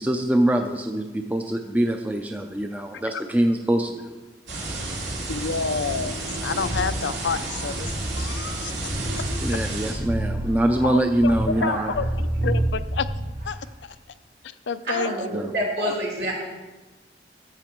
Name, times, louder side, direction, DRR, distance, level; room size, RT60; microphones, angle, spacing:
voice 1, 0.0-4.2 9.4-11.9 15.3-15.5, right 1 dB, 10° right, 4 dB, 0.5 m, -24 dB
sound 1, 4.5-9.9, right 2 dB, 85° right, 2.5 m, -31 dB
voice 2, 5.3-8.7 10.8-11.3 11.6-13.1 13.4-14.0 14.4-15.1 15.6-15.9, left 5 dB, 90° left, 12 dB, 0.5 m, -29 dB
sound 2, 6.6-13.5, right 1 dB, 40° right, 1.3 m, -29 dB
voice 3, 14.9-16.3, right 1 dB, 60° right, -2 dB, 3.0 m, -27 dB
14.0 x 7.4 x 4.5 m, 1.2 s
head